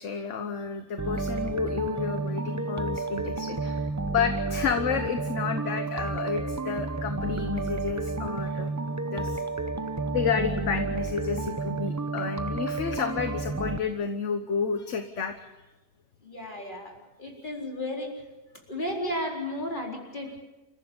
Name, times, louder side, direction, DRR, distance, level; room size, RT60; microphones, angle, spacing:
voice 1, 0.0-8.7 9.1-9.4 10.1-15.5, left 6 dB, 50° left, 7 dB, 1.3 m, -31 dB
sound 1, 1.0-13.8, right 3 dB, 15° right, 0.5 m, -31 dB
voice 2, 16.2-16.9 17.2-18.2 18.7-20.4, left 1 dB, 30° left, -1 dB, 4.4 m, -33 dB
28.0 x 15.0 x 7.2 m, 1.1 s
omnidirectional pair, 1.8 m